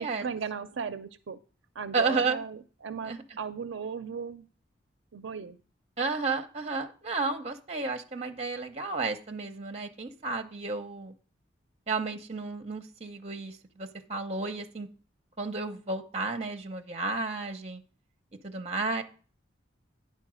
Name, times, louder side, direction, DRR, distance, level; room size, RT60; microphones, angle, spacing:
voice 1, 0.0-1.4 1.8-4.5 5.1-5.6, right 6 dB, 75° right, 12 dB, 0.5 m, -36 dB
voice 2, 1.9-2.4 3.1-3.2 6.0-11.1 11.9-14.9 15.4-17.8 18.4-19.0, right 3 dB, 30° right, 6 dB, 0.8 m, -32 dB
9.7 x 4.5 x 6.2 m, 0.39 s
head